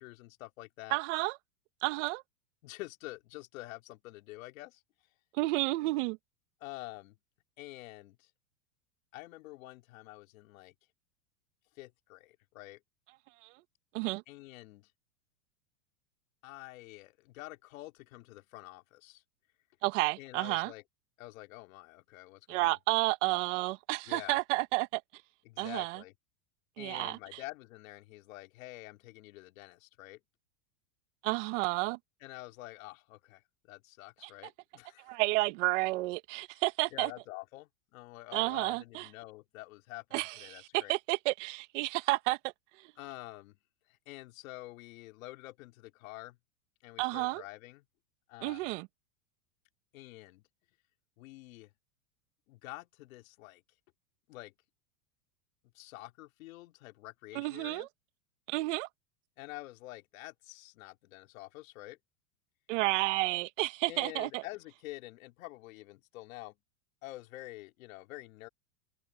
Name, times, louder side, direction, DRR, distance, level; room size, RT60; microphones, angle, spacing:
voice 1, 0.0-1.0 2.6-4.8 6.6-7.2 7.6-8.3 9.1-10.8 11.8-12.8 14.3-14.9 16.4-19.2 20.2-20.8 21.2-22.8 24.1-24.4 25.5-26.1 26.8-30.2 32.2-35.2 36.9-41.0 43.0-43.6 43.9-46.4 46.8-47.8 48.3-48.7 49.9-50.4 51.2-51.7 52.5-53.6 54.3-54.5 55.7-57.9 59.4-62.0 63.9-66.6 67.0-68.5, left 19 dB, 65° left, 3.6 m, -48 dB
voice 2, 0.9-1.4 1.8-2.2 5.3-6.2 13.4-13.5 13.9-14.2 19.8-20.7 22.5-25.0 25.6-26.0 26.8-27.4 31.2-32.0 34.2-34.3 35.0-37.1 38.3-39.1 40.1-42.4 42.8-42.9 47.0-47.4 48.4-48.9 57.3-57.9 58.5-58.9 62.7-64.4, right 22 dB, 55° right, 1.5 m, -31 dB
supercardioid pair, 140°, 44 cm